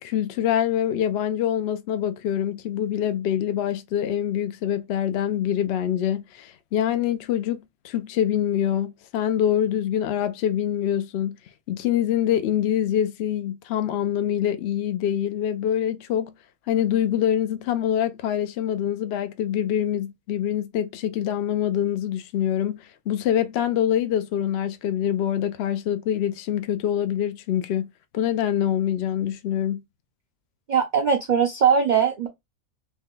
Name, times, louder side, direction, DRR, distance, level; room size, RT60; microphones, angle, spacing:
voice 1, 0.0-11.4 11.7-16.3 16.7-27.9 28.1-29.8, left 10 dB, 65° left, 0.7 m, -25 dB
voice 2, 30.7-32.3, right 7 dB, 50° right, 0.5 m, -20 dB
3.2 x 2.2 x 3.5 m
omnidirectional pair, 1.4 m